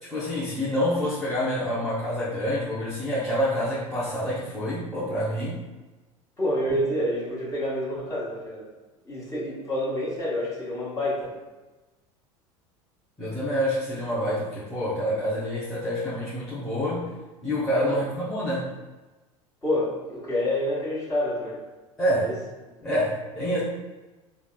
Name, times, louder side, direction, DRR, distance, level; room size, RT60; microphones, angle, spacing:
voice 1, 0.0-5.6 13.2-17.1 17.4-18.7 22.0-22.3 22.8-23.6, equal, ahead, -11 dB, 0.9 m, -27 dB
voice 2, 6.4-8.6 9.0-11.3 17.8-18.0 19.6-21.6 22.1-22.4, left 1 dB, 20° left, -7 dB, 1.5 m, -28 dB
3.4 x 2.4 x 2.2 m, 1.2 s
hypercardioid pair, 75°, 18 cm